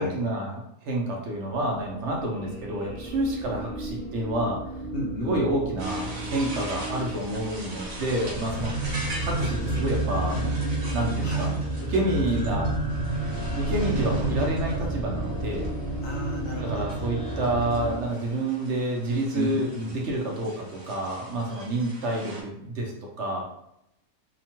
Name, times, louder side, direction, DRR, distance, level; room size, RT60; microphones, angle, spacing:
voice 1, 0.0-4.6 5.2-8.8 9.3-10.5 10.9-11.5 11.9-12.7 13.6-15.7 16.6-22.9 23.2-23.5, right 1 dB, 65° right, -1 dB, 0.9 m, -28 dB
sound 1, 1.8-18.0, right 2 dB, 10° left, 0.4 m, -31 dB
voice 2, 4.9-5.4 11.2-11.6 16.0-16.9 19.3-20.0, left 1 dB, 75° left, 0 dB, 1.0 m, -33 dB
sound 2, 5.8-22.4, right 2 dB, 40° right, 0.6 m, -42 dB
2.8 x 2.2 x 2.9 m, 0.79 s
omnidirectional pair, 1.4 m